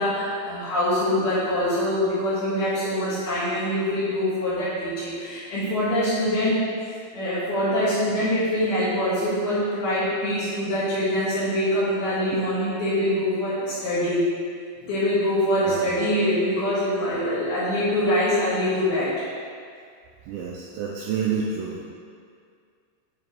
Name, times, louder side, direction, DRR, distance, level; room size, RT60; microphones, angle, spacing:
voice 1, 0.0-6.7 7.1-14.2 14.8-19.2, left 1 dB, 65° left, -10 dB, 2.9 m, -24 dB
voice 2, 20.3-21.8, right 6 dB, 85° right, -3 dB, 2.6 m, -29 dB
9.3 x 4.8 x 3.1 m, 2.2 s
omnidirectional pair, 5.7 m